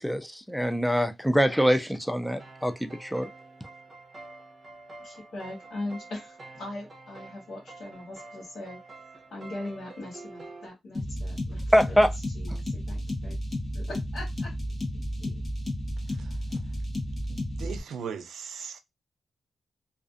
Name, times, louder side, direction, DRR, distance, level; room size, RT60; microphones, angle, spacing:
voice 1, 0.0-3.3 11.7-12.1, equal, ahead, 0.3 m, -24 dB
sound 1, 2.3-10.7, right 3 dB, 35° right, 0.7 m, -47 dB
voice 2, 5.0-9.0 9.3-12.0 12.3-13.4 13.7-14.5 14.9-15.4, left 2 dB, 70° left, 0.9 m, -40 dB
sound 2, 10.9-17.8, left 1 dB, 30° left, 1.0 m, -32 dB
voice 3, 17.3-18.8, right 7 dB, 80° right, 0.4 m, -38 dB
2.5 x 2.4 x 2.4 m
wide cardioid pair, 120°, 0 cm